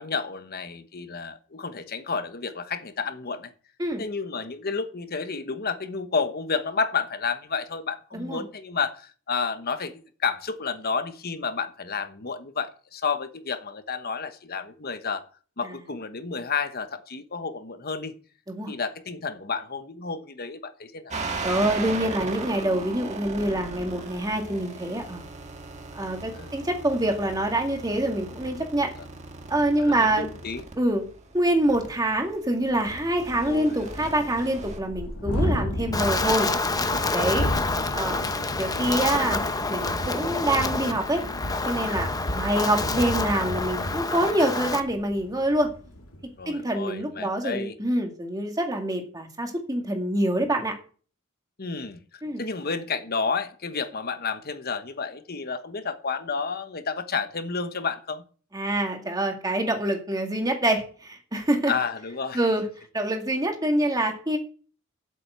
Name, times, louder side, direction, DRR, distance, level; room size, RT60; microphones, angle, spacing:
voice 1, 0.0-3.5 4.0-15.2 15.6-18.2 18.7-21.2 26.3-26.5 29.8-30.6 33.4-33.8 46.4-47.7 51.6-58.2 61.7-62.4, left 5 dB, 45° left, 1.1 m, -31 dB
sound 1, 21.1-34.8, right 3 dB, 35° right, 1.6 m, -37 dB
voice 2, 21.4-25.2 25.9-28.9 29.5-30.3 30.8-31.0 31.3-36.5 37.1-37.5 37.9-38.2 38.6-39.4 39.7-41.2 41.7-45.7 46.5-50.7 52.2-52.4 58.5-61.7 62.3-62.7 62.9-64.4, right 1 dB, 20° right, 2.1 m, -25 dB
Thunderstorm, 31.8-31.9 32.3-32.4 32.6-46.3, left 1 dB, 90° left, 2.1 m, -33 dB
Wind, 35.9-44.8, left 3 dB, 20° left, 0.7 m, -28 dB
8.2 x 7.7 x 8.0 m
head